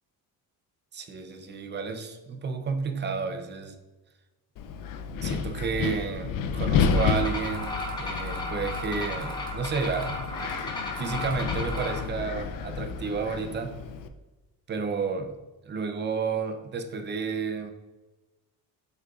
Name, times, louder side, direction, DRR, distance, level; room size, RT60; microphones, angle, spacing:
voice 1, 0.9-3.8 5.2-10.2 11.0-13.8 14.7-15.3 15.6-17.7, right 5 dB, 30° right, 7 dB, 0.6 m, -31 dB
Wind, 4.6-14.1, left 6 dB, 60° left, 0.6 m, -31 dB
sound 1, 6.9-12.0, left 1 dB, 10° left, 1.0 m, -35 dB
7.6 x 5.5 x 2.4 m, 1.1 s
cardioid pair, 165°, 38 cm